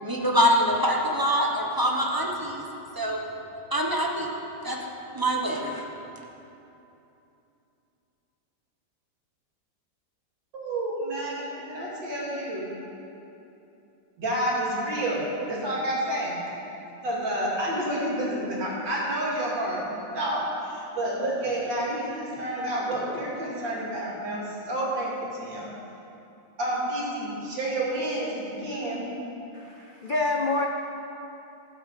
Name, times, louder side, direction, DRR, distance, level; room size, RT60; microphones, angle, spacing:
voice 1, 0.0-2.6 2.9-3.2 3.7-4.3 4.6-4.8 5.1-5.9, equal, 15° right, -1 dB, 0.9 m, -24 dB
voice 2, 10.5-12.7 14.2-16.4 17.0-25.1 25.4-25.7 26.6-29.1, right 1 dB, 70° right, -5 dB, 3.3 m, -29 dB
voice 3, 29.5-30.7, left 2 dB, 80° left, 1 dB, 0.4 m, -27 dB
14.0 x 8.1 x 6.6 m, 2.9 s
omnidirectional pair, 2.0 m